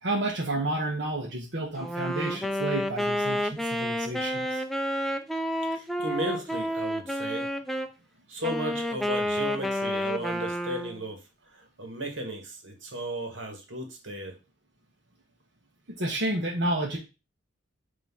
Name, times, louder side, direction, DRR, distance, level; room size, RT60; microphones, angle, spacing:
voice 1, 0.0-4.6 15.9-17.0, right 2 dB, 60° right, -3 dB, 1.2 m, -30 dB
Wind instrument woodwind instrument, 1.8-7.9 8.4-11.1, equal, ahead, 0.4 m, -30 dB
voice 2, 5.7-7.5 8.3-11.2 11.5-14.4, right 1 dB, 80° right, 4 dB, 1.6 m, -35 dB
6.0 x 3.1 x 5.7 m, 0.29 s
head